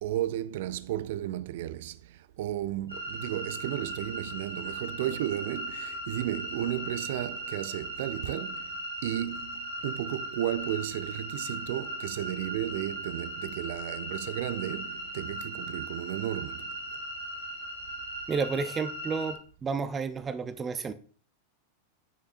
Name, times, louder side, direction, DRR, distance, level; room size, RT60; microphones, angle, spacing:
voice 1, 0.0-16.7, right 12 dB, 55° right, 0.4 m, -34 dB
sound 1, 2.9-19.3, right 1 dB, 90° left, 2.5 m, -38 dB
voice 2, 18.3-20.9, right 5 dB, 20° right, 0.7 m, -31 dB
9.5 x 5.8 x 2.6 m
figure-of-eight pair, 90°, 0 cm